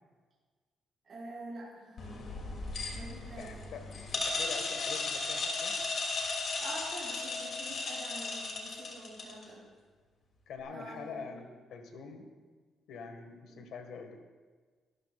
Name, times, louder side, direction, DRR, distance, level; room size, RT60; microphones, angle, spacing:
voice 1, 1.0-2.4 2.9-3.5 6.6-9.6 10.7-11.4 13.5-13.6, right 2 dB, 35° right, -7 dB, 5.1 m, -46 dB
sound 1, 2.0-9.4, left 3 dB, 50° left, 2.8 m, -36 dB
voice 2, 3.2-5.8 10.5-12.3 12.9-14.2, left 5 dB, 75° left, 5 dB, 1.8 m, -45 dB
23.0 x 13.5 x 2.5 m, 1.4 s
cardioid pair, 155°, 0 cm